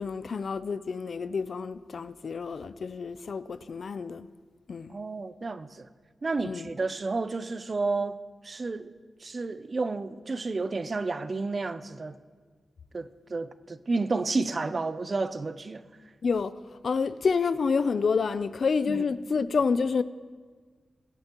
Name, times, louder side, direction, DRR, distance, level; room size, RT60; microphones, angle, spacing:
voice 1, 0.0-4.3 4.7-5.0 6.4-6.7 16.2-16.5 16.8-20.0, left 5 dB, 55° left, 0.3 m, -28 dB
voice 2, 4.9-5.9 6.2-8.9 9.2-12.2 12.9-15.8 18.9-19.1, right 3 dB, 35° right, 0.4 m, -31 dB
21.0 x 7.9 x 2.9 m
wide cardioid pair, 145°, 0 cm